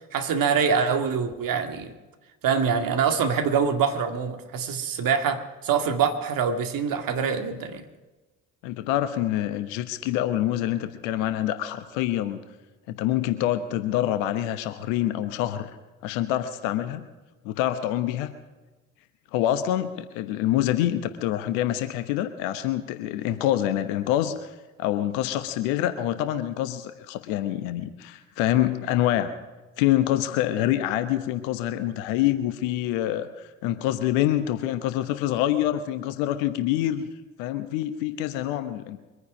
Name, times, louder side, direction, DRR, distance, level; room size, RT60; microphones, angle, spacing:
voice 1, 0.1-1.9 2.4-7.8, right 6 dB, 55° right, 6 dB, 2.1 m, -24 dB
voice 2, 8.6-12.4 12.9-15.7 16.0-17.0 17.4-18.3 19.3-24.5 24.8-29.3 29.8-37.1 37.4-39.0, left 12 dB, 75° left, 10 dB, 1.1 m, -26 dB
24.0 x 9.7 x 4.9 m, 1.2 s
hypercardioid pair, 55°, 40 cm